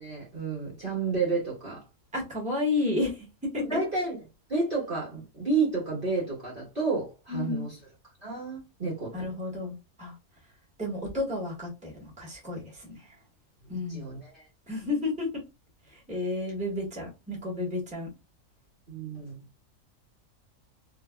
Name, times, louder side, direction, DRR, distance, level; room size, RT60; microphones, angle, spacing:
voice 1, 0.0-1.8 3.7-4.2 4.5-7.8 8.2-9.1 13.9-14.4 18.9-19.4, right 4 dB, 40° right, 1.1 m, -30 dB
voice 2, 2.1-3.2 3.5-3.8 7.3-7.7 9.1-10.1 10.8-11.9 12.2-13.0 13.7-14.1 14.7-15.3 16.1-18.1, left 2 dB, 5° right, 1.1 m, -31 dB
2.8 x 2.5 x 2.2 m
omnidirectional pair, 1.6 m